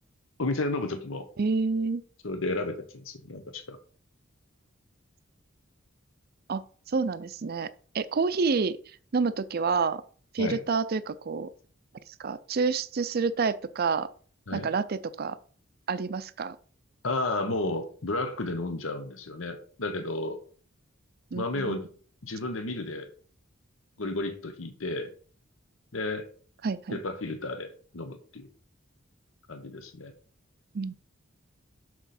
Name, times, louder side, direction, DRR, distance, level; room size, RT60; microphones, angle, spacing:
voice 1, 0.4-1.3 2.2-3.8 10.4-10.6 14.5-14.7 17.0-20.4 21.3-21.9 22.2-23.1 24.0-25.1 25.9-26.3 26.9-28.5 29.5-30.1, left 2 dB, 75° left, 1.0 m, -32 dB
voice 2, 1.4-2.0 6.5-6.6 6.9-7.7 7.9-8.8 9.1-10.0 10.3-11.5 12.2-14.1 14.5-15.4 15.9-16.6 21.3-21.8 26.6-27.0 30.7-30.9, right 4 dB, 50° right, 0.4 m, -28 dB
6.4 x 6.0 x 4.2 m
head